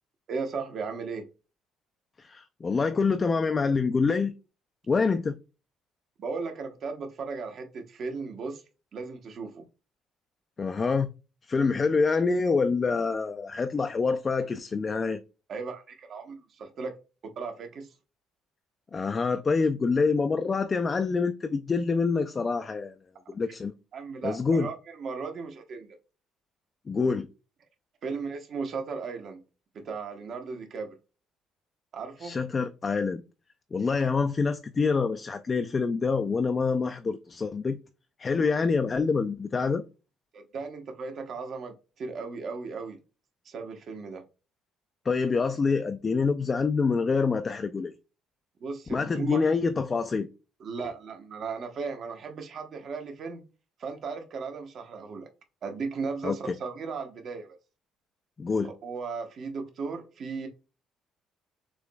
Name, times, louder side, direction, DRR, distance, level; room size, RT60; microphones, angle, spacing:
voice 1, 0.3-1.2 6.2-8.6 8.9-9.6 15.5-17.0 17.4-17.9 23.9-26.0 28.0-29.4 29.7-30.9 31.9-32.4 40.3-43.0 43.4-44.2 48.6-49.4 50.6-53.4 53.8-55.3 55.6-57.6 58.6-60.5, right 4 dB, 50° right, 1.0 m, -36 dB
voice 2, 2.2-4.3 4.9-5.4 10.6-11.1 11.5-15.2 18.9-23.0 23.3-23.7 24.2-24.7 26.9-27.3 32.2-33.2 33.7-37.8 38.2-39.8 45.1-47.9 48.9-50.3 56.2-56.5 58.4-58.7, left 4 dB, 25° left, 0.3 m, -26 dB
6.7 x 2.9 x 2.3 m
cardioid pair, 130°, 0 cm